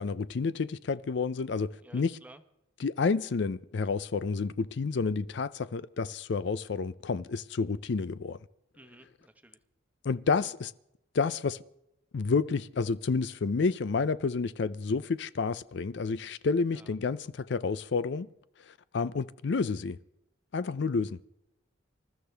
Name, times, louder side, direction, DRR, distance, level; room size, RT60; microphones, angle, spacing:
voice 1, 0.0-2.2 2.8-8.4 10.0-10.7 11.1-11.6 12.1-18.3 18.7-20.0 20.5-21.2, left 4 dB, 60° left, 0.4 m, -30 dB
voice 2, 1.8-2.4 8.7-9.6 16.7-16.9 19.6-19.8, right 1 dB, 10° right, 1.1 m, -54 dB
26.0 x 13.5 x 3.4 m
head